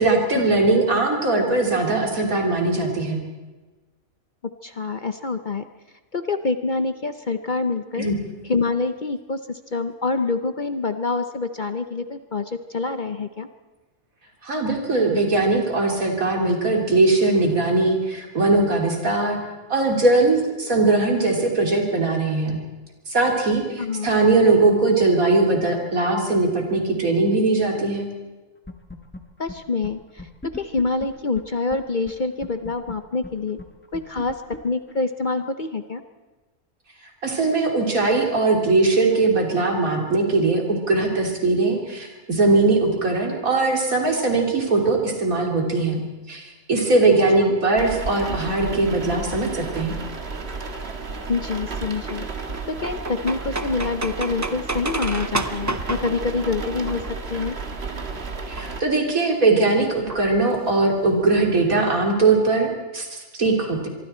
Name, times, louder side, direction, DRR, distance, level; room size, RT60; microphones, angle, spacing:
voice 1, 0.0-3.2 8.0-8.2 14.4-19.4 19.7-22.6 23.1-28.1 37.2-46.0 46.3-50.0 58.5-63.9, right 3 dB, 80° right, 1 dB, 3.6 m, -20 dB
voice 2, 4.6-5.7 6.1-8.1 8.5-13.5 23.8-24.1 29.4-33.6 33.9-34.4 34.6-36.0 47.4-47.5 51.3-52.2 52.7-57.0 57.3-57.6, left 3 dB, 40° left, 8 dB, 0.8 m, -26 dB
sound 1, 28.7-29.2 29.5-29.6 29.8-29.9 30.2-31.8 32.1-32.2 32.4-35.4, left 1 dB, 10° left, 1.4 m, -37 dB
sound 2, 47.8-58.8, right 4 dB, 50° right, 1.9 m, -32 dB
sound 3, 52.1-57.4 58.4-58.8 60.1-60.7 61.1-61.2 61.3-61.4 61.7-62.1, right 2 dB, 20° right, 0.4 m, -31 dB
24.5 x 24.0 x 4.4 m, 1.2 s
omnidirectional pair, 1.4 m